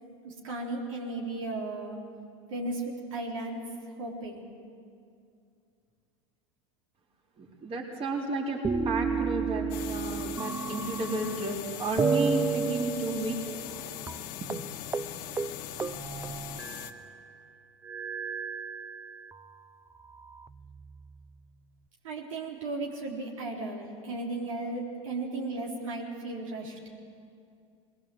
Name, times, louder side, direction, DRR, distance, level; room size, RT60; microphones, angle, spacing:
voice 1, 0.2-2.0 2.5-3.6 4.0-4.4 22.0-26.8, right 2 dB, 80° right, -2 dB, 3.9 m, -35 dB
voice 2, 7.4-8.6 8.8-13.4 14.4-14.5, right 2 dB, 35° right, -1 dB, 4.1 m, -32 dB
sound 1, 8.6-11.6 12.0-13.8 14.1-14.2 14.5-14.7 14.9-15.1 15.4-17.1 17.8-19.4 20.1-21.1, right 5 dB, 15° right, 0.6 m, -32 dB
sound 2, 9.7-16.9, left 11 dB, 55° left, 1.4 m, -40 dB
20.5 x 19.5 x 7.9 m, 2.4 s
hypercardioid pair, 95°, 16 cm